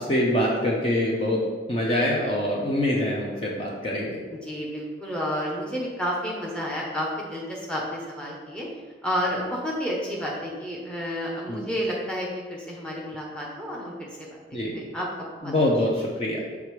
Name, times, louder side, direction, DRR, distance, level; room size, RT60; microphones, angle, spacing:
voice 1, 0.0-1.4 1.7-4.2 11.5-11.7 14.5-14.7 15.4-16.4, left 1 dB, 30° left, -3 dB, 0.8 m, -24 dB
voice 2, 4.4-8.7 9.0-14.4 14.7-15.1 15.4-15.5, equal, 5° left, -3 dB, 1.0 m, -30 dB
6.4 x 3.5 x 4.8 m, 1.4 s
head